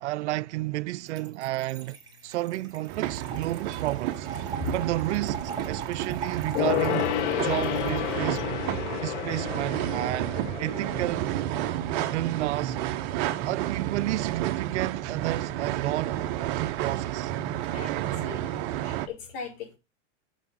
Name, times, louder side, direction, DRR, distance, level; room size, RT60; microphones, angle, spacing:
voice 1, 0.0-2.0 2.2-4.3 4.7-7.1 7.4-8.6 9.0-11.3 12.1-12.8 13.4-17.3, right 17 dB, 70° right, 0.5 m, -31 dB
Trickle dribble / Fill (with liquid), 1.1-8.4, right 4 dB, 10° right, 2.1 m, -41 dB
sound 1, 2.9-19.1, right 13 dB, 40° right, 0.9 m, -31 dB
Gong, 6.5-12.4 12.7-12.8, left 15 dB, 70° left, 0.6 m, -31 dB
voice 2, 17.7-19.8, left 6 dB, 55° left, 5.0 m, -39 dB
7.2 x 6.3 x 7.4 m
hypercardioid pair, 140°, 37 cm